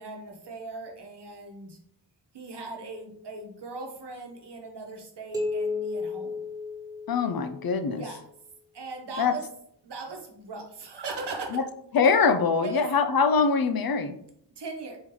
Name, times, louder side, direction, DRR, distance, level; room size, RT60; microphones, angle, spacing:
voice 1, 0.0-1.8 2.3-6.4 7.9-8.2 8.7-9.4 9.8-11.6 12.6-12.8 14.6-15.0, right 3 dB, 75° right, 2 dB, 1.1 m, -39 dB
sound 1, 5.3-7.7, left 3 dB, 10° right, 1.3 m, -33 dB
voice 2, 7.1-8.0 9.2-9.3 11.5-11.6 11.9-14.2, left 5 dB, 60° left, 10 dB, 0.5 m, -23 dB
4.4 x 2.9 x 3.8 m, 0.68 s
wide cardioid pair, 85°, 41 cm